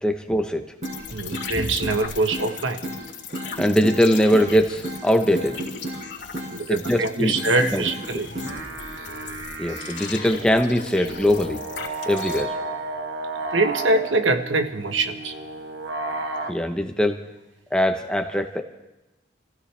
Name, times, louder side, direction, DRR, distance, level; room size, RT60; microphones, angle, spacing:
voice 1, 0.0-0.6 3.6-5.5 6.7-7.4 7.7-7.8 9.6-11.6 12.1-12.5 16.5-17.2 17.7-18.6, equal, 5° left, 5 dB, 1.0 m, -21 dB
sound 1, 0.8-12.4, left 5 dB, 75° left, 2.9 m, -37 dB
sound 2, 0.8-1.0 1.3-2.0 2.3-2.5 2.8-3.0 3.3-4.0 4.3-4.5 4.8-5.0 5.3-6.0 6.3-6.5 6.8-7.0 7.3-8.0 8.3-8.5, right 1 dB, 40° right, 4.8 m, -32 dB
voice 2, 1.1-2.8 6.5-8.3 13.5-15.3, right 3 dB, 85° right, 7 dB, 1.3 m, -23 dB
sound 3, 8.3-16.5, right 2 dB, 70° right, 1.6 m, -33 dB
27.0 x 16.0 x 3.4 m, 1.0 s
head